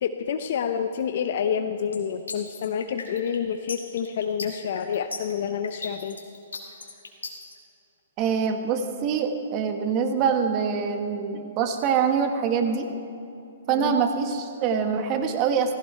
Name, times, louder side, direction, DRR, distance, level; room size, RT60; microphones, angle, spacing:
voice 1, 0.0-6.2 13.8-14.0, left 7 dB, 60° left, 8 dB, 0.7 m, -28 dB
sound 1, 1.9-7.5, left 4 dB, 90° left, 2.1 m, -37 dB
voice 2, 8.2-12.9 13.7-15.8, right 6 dB, 35° right, 6 dB, 1.4 m, -24 dB
15.5 x 15.5 x 4.5 m, 2.7 s
hypercardioid pair, 130°, 0 cm